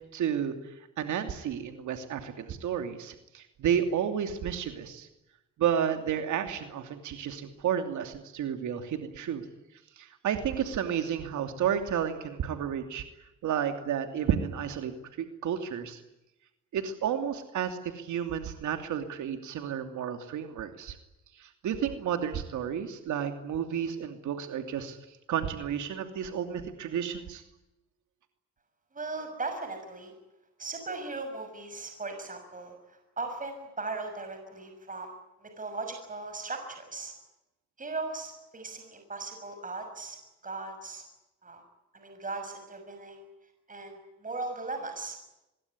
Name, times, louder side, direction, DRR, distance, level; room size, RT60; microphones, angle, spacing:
voice 1, 0.1-5.1 5.6-9.5 10.0-13.0 13.4-16.0 16.7-21.0 21.3-27.4, right 8 dB, 75° right, 6 dB, 2.8 m, -31 dB
voice 2, 28.9-30.1 30.6-35.1 35.4-37.1 37.8-41.0 41.4-41.6 41.9-43.2 43.7-45.2, right 3 dB, 25° right, 6 dB, 6.4 m, -38 dB
24.5 x 22.0 x 9.8 m, 0.94 s
cardioid pair, 90°, 30 cm